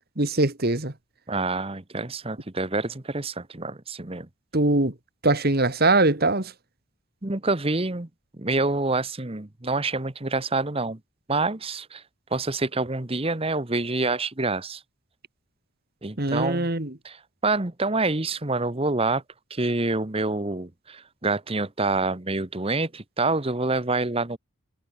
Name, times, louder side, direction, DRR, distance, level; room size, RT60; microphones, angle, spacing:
voice 1, 0.2-0.9 4.5-4.9 5.2-6.5 16.2-16.9, right 2 dB, 45° right, 2.1 m, -22 dB
voice 2, 1.3-4.3 7.2-8.1 8.4-11.0 11.3-12.0 12.3-14.8 16.0-16.7 17.0-19.2 19.5-24.4, right 3 dB, 25° right, 1.1 m, -27 dB
head